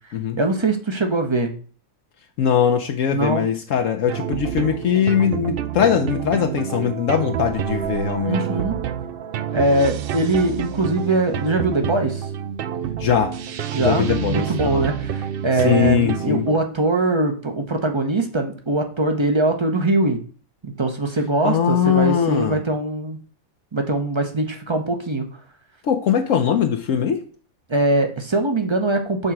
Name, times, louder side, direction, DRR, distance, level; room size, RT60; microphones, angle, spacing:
voice 1, 0.4-1.5 3.1-3.5 8.3-8.8 9.5-12.3 13.7-20.2 20.6-23.2 23.7-25.3 27.7-29.3, right 2 dB, 25° right, 4 dB, 0.7 m, -22 dB
voice 2, 2.4-8.6 13.0-13.3 13.8-14.8 15.6-16.4 21.4-22.6 25.8-27.2, left 8 dB, 70° left, 5 dB, 1.0 m, -21 dB
sound 1, 4.1-16.6, right 9 dB, 85° right, 0.5 m, -28 dB
6.6 x 3.8 x 5.8 m, 0.41 s
omnidirectional pair, 1.5 m